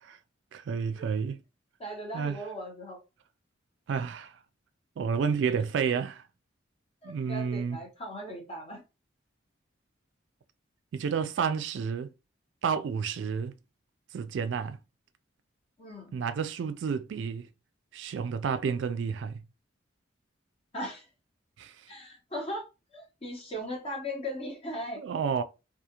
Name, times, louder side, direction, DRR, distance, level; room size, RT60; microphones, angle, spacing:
voice 1, 0.5-1.4 2.1-2.4 3.9-4.3 5.0-6.2 7.0-7.8 10.9-12.1 12.6-13.5 14.1-14.8 16.1-17.5 17.9-19.4 21.6-21.7 25.0-25.4, right 6 dB, 65° right, 0.3 m, -30 dB
voice 2, 1.8-3.0 7.0-8.8 15.8-16.1 20.7-21.1 21.9-22.7 22.9-25.0, equal, 30° left, 1.0 m, -38 dB
2.4 x 2.3 x 2.9 m
head